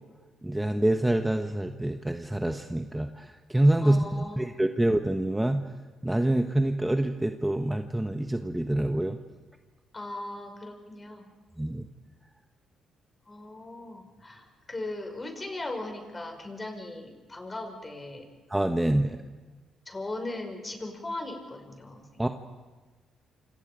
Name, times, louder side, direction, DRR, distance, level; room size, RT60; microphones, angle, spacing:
voice 1, 0.4-5.6 6.0-9.2 11.6-11.8 18.5-19.2 22.2-22.3, right 1 dB, 10° right, 6 dB, 1.1 m, -26 dB
voice 2, 3.8-4.4 9.9-11.3 13.3-18.3 19.9-22.3, left 2 dB, 25° left, 4 dB, 5.5 m, -38 dB
28.0 x 27.0 x 5.1 m, 1.3 s
cardioid pair, 90°, 0 cm